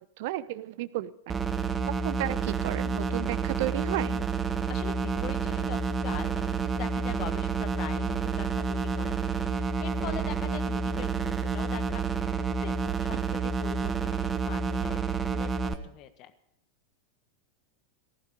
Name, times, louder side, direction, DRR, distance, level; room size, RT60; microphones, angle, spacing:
voice 1, 0.0-1.3 1.9-4.2, right 16 dB, 55° right, 17 dB, 0.8 m, -33 dB
sound 1, 1.3-15.7, right 5 dB, 20° right, 1.3 m, -29 dB
voice 2, 4.7-12.1 12.6-15.0 15.3-16.3, left 11 dB, 40° left, 11 dB, 1.5 m, -42 dB
18.5 x 14.5 x 5.1 m, 0.73 s
figure-of-eight pair, 90°, 0 cm